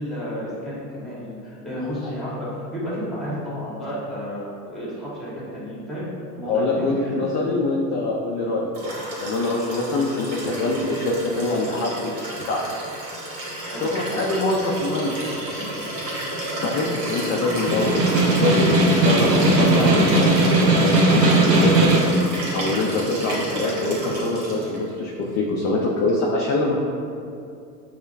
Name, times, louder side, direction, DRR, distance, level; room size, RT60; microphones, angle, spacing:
voice 1, 0.0-6.0 6.3-7.2 13.6-13.8 15.5-15.7, equal, ahead, -8 dB, 1.5 m, -32 dB
voice 2, 6.5-8.9 9.2-12.6 13.7-15.3 16.6-21.9 22.5-26.8, left 2 dB, 35° left, -2 dB, 0.5 m, -24 dB
Liquid, 8.7-24.8 26.1-26.2, right 1 dB, 40° right, 1.3 m, -31 dB
Snare drum, 17.5-22.2, right 2 dB, 90° right, 0.7 m, -18 dB
6.2 x 2.1 x 2.5 m, 2.5 s
hypercardioid pair, 85°, 47 cm